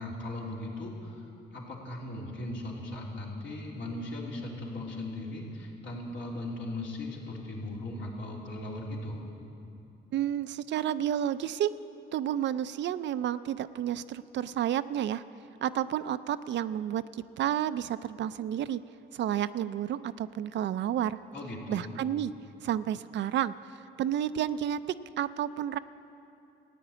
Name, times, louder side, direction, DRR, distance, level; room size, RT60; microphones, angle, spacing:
voice 1, 0.0-9.2 21.3-21.9, left 1 dB, 70° left, -3 dB, 3.2 m, -38 dB
voice 2, 10.1-11.7 12.1-15.2 15.6-18.8 19.1-21.2 21.7-22.3 22.6-23.5 24.0-24.8 25.2-25.8, right 10 dB, 65° right, 13 dB, 0.4 m, -30 dB
15.0 x 9.3 x 8.6 m, 2.8 s
cardioid pair, 90°, 20 cm